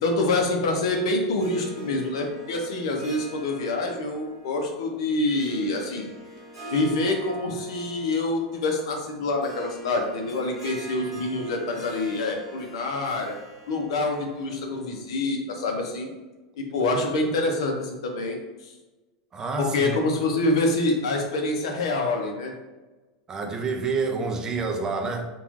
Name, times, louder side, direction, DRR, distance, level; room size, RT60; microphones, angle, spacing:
voice 1, 0.0-6.1 6.7-13.4 13.7-16.1 16.5-18.7 19.6-22.5, left 2 dB, 80° left, 0.6 m, -26 dB
Harp, 1.3-15.0, right 2 dB, ahead, 1.3 m, -44 dB
voice 2, 19.3-20.1 23.3-25.3, right 4 dB, 20° right, 0.3 m, -28 dB
3.0 x 2.3 x 2.5 m
supercardioid pair, 140°, 3 cm